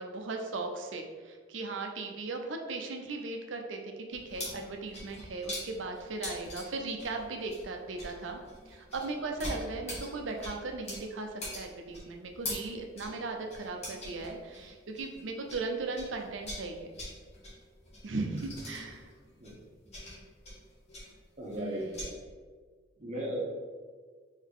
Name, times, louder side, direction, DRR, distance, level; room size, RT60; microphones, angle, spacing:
voice 1, 0.0-8.4 8.7-16.9 18.0-19.1 21.6-22.1, right 3 dB, 75° right, 3 dB, 0.6 m, -37 dB
sound 1, 4.1-15.7 15.9-22.1, left 1 dB, 35° left, 1.2 m, -43 dB
voice 2, 21.4-22.1 23.0-23.4, equal, 40° right, -3 dB, 0.9 m, -36 dB
3.8 x 3.5 x 3.6 m, 1.5 s
head